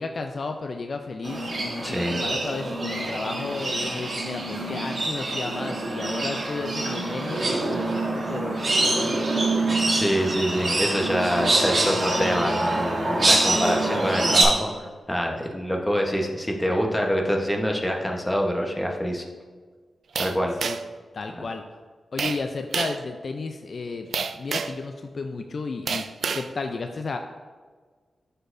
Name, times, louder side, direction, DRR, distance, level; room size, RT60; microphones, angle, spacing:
voice 1, 0.0-9.3 20.6-20.8 21.1-21.6 22.1-24.1 24.4-26.0 26.3-27.2, left 3 dB, 55° left, 5 dB, 0.4 m, -33 dB
sound 1, 1.2-14.4, right 2 dB, 50° right, 1.7 m, -25 dB
voice 2, 1.8-2.2 9.7-14.7 15.1-19.2 20.2-20.5, equal, 10° left, 1 dB, 1.0 m, -25 dB
sound 2, 20.2-21.0 22.2-22.4 22.7-23.0 24.1-24.8 25.9-26.5, right 5 dB, 75° right, 0.3 m, -28 dB
11.5 x 4.4 x 2.6 m, 1.5 s
cardioid pair, 85°, 0 cm